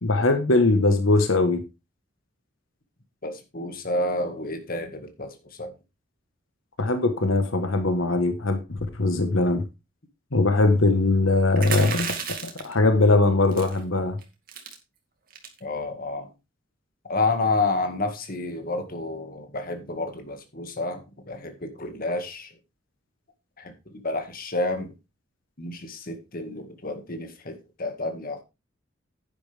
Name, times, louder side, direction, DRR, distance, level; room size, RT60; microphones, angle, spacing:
voice 1, 0.0-1.6 6.8-9.6 10.3-14.2, left 2 dB, 85° left, 1.4 m, -21 dB
voice 2, 3.2-5.7 15.6-16.3 17.1-22.5 23.6-24.9 25.6-28.4, left 2 dB, 45° left, 2.0 m, -30 dB
sound 1, 11.6-12.7 13.5-13.8 14.2-14.3 14.5-14.7 15.3-15.6, right 7 dB, 45° right, 2.3 m, -32 dB
10.5 x 9.1 x 3.5 m
head